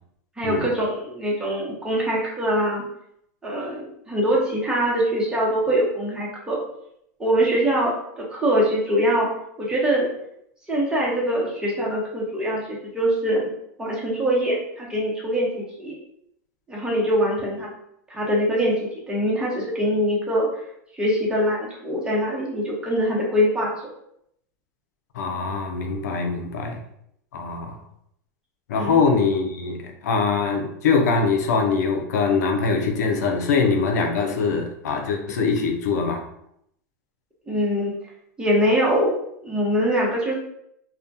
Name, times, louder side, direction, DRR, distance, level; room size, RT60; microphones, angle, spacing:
voice 1, 0.4-2.8 3.4-6.6 7.2-9.3 9.6-10.1 10.7-13.5 13.8-16.0 16.7-17.7 18.1-20.5 20.9-23.9 28.7-29.0 37.5-37.9 38.4-39.1 39.4-40.3, equal, 10° right, -4 dB, 0.8 m, -23 dB
voice 2, 25.1-26.8 27.3-27.8 28.7-36.2, left 4 dB, 80° left, 4 dB, 0.4 m, -23 dB
2.2 x 2.1 x 2.6 m, 0.74 s
supercardioid pair, 120°, 9 cm